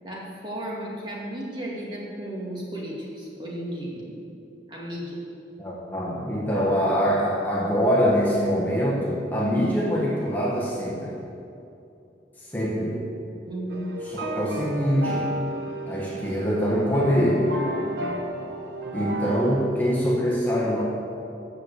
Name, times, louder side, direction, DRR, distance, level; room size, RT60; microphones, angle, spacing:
voice 1, 0.0-3.9 4.7-5.2 13.4-13.9, right 1 dB, 25° right, -4 dB, 2.1 m, -34 dB
voice 2, 5.6-11.1 12.4-13.0 14.0-15.3 15.9-17.5 18.9-20.8, equal, 10° left, -6 dB, 1.4 m, -24 dB
sound 1, 13.7-19.7, right 1 dB, 65° right, 1.0 m, -32 dB
9.1 x 6.8 x 7.9 m, 2.7 s
head